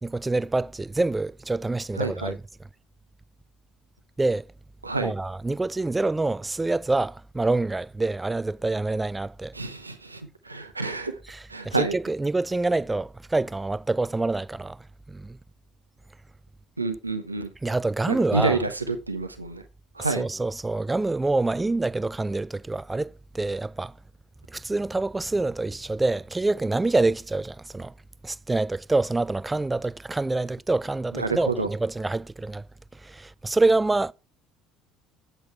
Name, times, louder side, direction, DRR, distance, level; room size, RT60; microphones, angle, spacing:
voice 1, 0.0-2.4 4.2-4.5 5.0-9.6 11.3-15.4 17.6-18.6 20.0-23.9 24.5-27.9 28.2-32.6 32.9-34.1, right 2 dB, 15° right, 0.4 m, -26 dB
voice 2, 2.0-2.3 4.8-5.1 9.5-11.2 11.5-12.0 16.8-17.5 18.1-19.6 19.9-20.2 31.1-31.7, right 3 dB, 90° right, 0.8 m, -28 dB
8.0 x 6.7 x 4.4 m
figure-of-eight pair, 55°, 0 cm